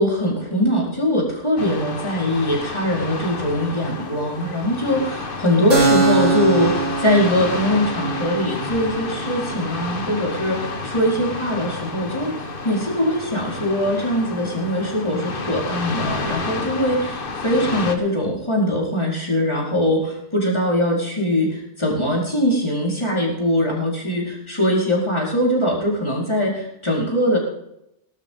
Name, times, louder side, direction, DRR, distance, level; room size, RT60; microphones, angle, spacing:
voice 1, 0.0-27.4, equal, 25° left, -3 dB, 4.7 m, -22 dB
sound 1, 1.6-17.9, left 3 dB, 50° left, 1.5 m, -30 dB
Keyboard (musical), 5.7-13.0, right 3 dB, 80° right, 4.5 m, -25 dB
19.5 x 12.0 x 3.8 m, 0.80 s
omnidirectional pair, 1.2 m